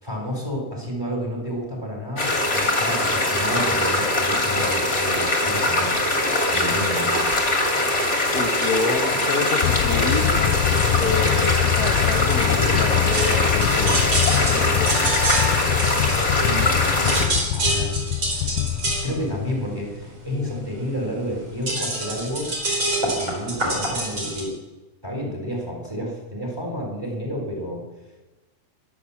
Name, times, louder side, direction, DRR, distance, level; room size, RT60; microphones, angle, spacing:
voice 1, 0.0-6.0 6.5-7.3 16.4-18.0 18.3-18.5 19.0-22.5 23.0-24.6 25.0-27.8, equal, 5° right, -1 dB, 3.8 m, -30 dB
sound 1, 2.2-17.3, left 1 dB, 20° left, 2.6 m, -22 dB
voice 2, 8.3-10.4 10.9-15.0, left 3 dB, 65° left, 0 dB, 0.9 m, -28 dB
sound 2, 9.6-19.7, left 14 dB, 90° left, 1.6 m, -24 dB
sound 3, 13.1-16.7 17.0-24.4, right 1 dB, 35° right, 4.6 m, -26 dB
22.0 x 7.8 x 7.2 m, 1.1 s
omnidirectional pair, 3.9 m